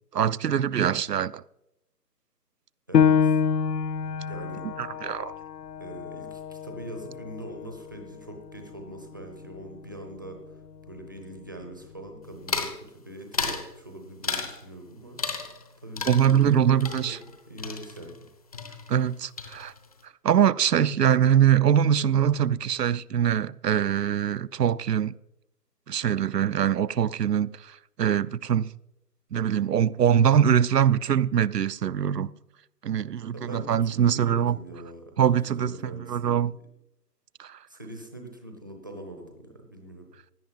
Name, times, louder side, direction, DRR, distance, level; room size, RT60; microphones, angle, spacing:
voice 1, 0.1-1.4 4.8-5.4 16.1-17.2 18.9-19.7 20.2-25.1 25.9-28.7 29.3-32.3 32.8-34.6 35.2-35.7 36.1-36.5 37.4-37.6, right 9 dB, 70° right, 0.7 m, -23 dB
Piano, 2.9-8.1 8.6-8.7 9.3-9.8, left 7 dB, 70° left, 0.7 m, -26 dB
voice 2, 2.9-3.4 4.3-4.7 5.8-10.4 10.9-15.2 15.8-18.2 33.3-36.7 37.7-40.1, right 1 dB, 15° right, 0.8 m, -43 dB
sound 1, 12.5-12.8 13.3-13.7 14.2-14.6 15.2-15.7 16.0-18.3 18.5-19.1 19.4-19.9, left 4 dB, 20° left, 1.0 m, -33 dB
16.5 x 10.5 x 5.5 m
hypercardioid pair, 165°, 49 cm